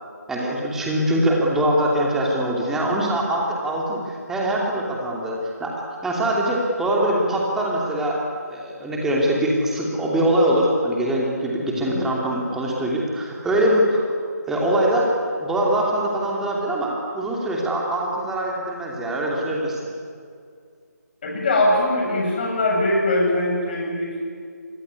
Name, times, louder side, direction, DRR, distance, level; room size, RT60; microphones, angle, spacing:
voice 1, 0.3-5.8 6.0-8.2 8.5-14.0 14.5-15.1 15.4-19.9, right 1 dB, 5° right, -3 dB, 2.8 m, -23 dB
voice 2, 11.7-12.0 21.2-24.3, left 1 dB, 30° left, -1 dB, 7.8 m, -22 dB
27.5 x 21.5 x 9.7 m, 2.3 s
figure-of-eight pair, 160°, 10 cm